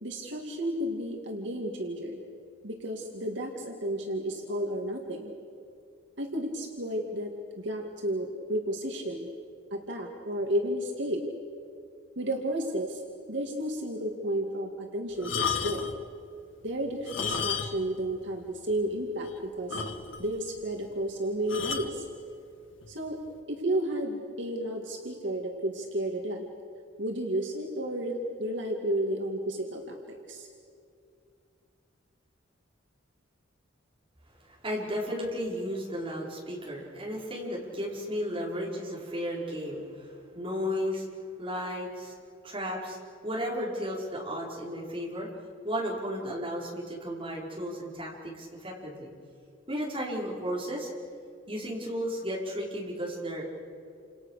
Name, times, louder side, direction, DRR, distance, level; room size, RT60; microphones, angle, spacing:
voice 1, 0.0-2.2 2.6-5.3 6.2-9.3 9.7-11.2 12.2-13.0 13.3-15.8 16.6-19.8 20.2-22.1 22.9-23.2 23.5-26.5 27.0-30.5, right 1 dB, 65° right, 1 dB, 2.4 m, -32 dB
sound 1, 15.2-16.0 17.0-18.0 18.2-18.4 18.9-19.0 19.2-19.3 19.7-20.4 21.5-22.0 22.8-23.1, left 6 dB, 75° left, 1.8 m, -32 dB
voice 2, 34.6-41.1 41.4-42.1 42.4-43.0 43.2-45.3 45.6-49.1 49.7-50.9 51.5-53.5, equal, 25° right, -4 dB, 5.5 m, -34 dB
29.0 x 27.5 x 6.7 m, 2.4 s
head